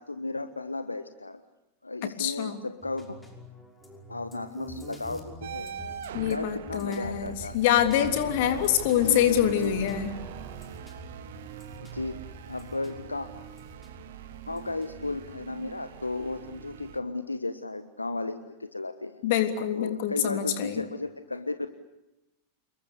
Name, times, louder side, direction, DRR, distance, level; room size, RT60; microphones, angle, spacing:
voice 1, 0.0-1.4 1.8-3.2 4.1-5.7 6.3-7.6 8.0-8.6 9.1-9.7 11.9-12.2 12.5-13.3 14.5-19.2 19.7-21.7, left 2 dB, 80° left, 10 dB, 1.3 m, -34 dB
voice 2, 2.0-2.6 6.1-10.1 19.2-20.8, left 10 dB, 50° left, 8 dB, 3.3 m, -25 dB
sound 1, 2.8-15.3, left 2 dB, 10° left, 5.9 m, -48 dB
sound 2, 5.4-17.0, right 9 dB, 55° right, 2.0 m, -43 dB
sound 3, 7.8-11.1, right 6 dB, 40° right, 5.2 m, -44 dB
29.0 x 22.0 x 8.5 m, 0.92 s
figure-of-eight pair, 90°, 0 cm